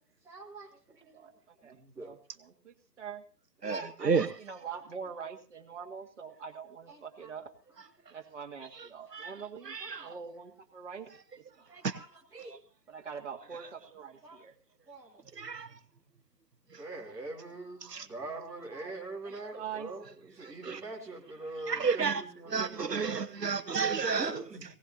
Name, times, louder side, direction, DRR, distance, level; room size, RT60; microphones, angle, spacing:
voice 1, 0.2-1.2 1.6-2.1 3.6-4.3 4.6-4.8 6.9-7.3 9.3-9.4 9.8-10.2 11.7-12.6 14.2-14.4 14.9-15.2 16.8-23.1 24.2-24.6, right 2 dB, 5° right, 2.2 m, -44 dB
voice 2, 1.1-3.2 4.0-7.5 8.1-11.1 11.4-11.7 12.9-14.5 18.8-18.9 19.2-19.9, right 6 dB, 45° right, 2.1 m, -44 dB
voice 3, 3.6-4.3 9.1-9.3 9.7-10.1 11.8-11.9 15.4-15.7 16.7-16.8 17.8-18.1 20.6-20.8 21.7-24.3, right 5 dB, 80° right, 1.1 m, -31 dB
19.0 x 18.0 x 2.8 m
figure-of-eight pair, 145°, 48 cm